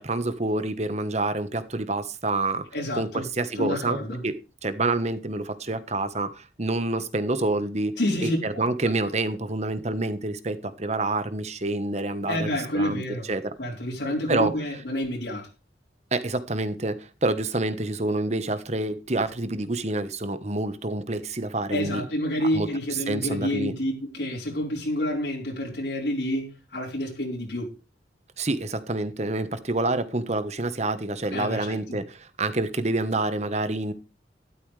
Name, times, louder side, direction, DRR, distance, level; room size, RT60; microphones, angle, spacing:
voice 1, 0.0-2.7 2.9-4.3 4.6-13.0 13.3-13.5 14.3-14.5 16.1-22.0 22.5-22.7 23.1-23.7 28.4-33.9, right 2 dB, 40° right, 1.3 m, -27 dB
voice 2, 2.7-3.3 3.6-4.2 8.0-8.4 8.8-8.9 12.3-13.3 13.6-15.5 21.7-27.7 31.3-31.8, left 1 dB, 75° left, 4.4 m, -28 dB
13.0 x 12.5 x 3.3 m
head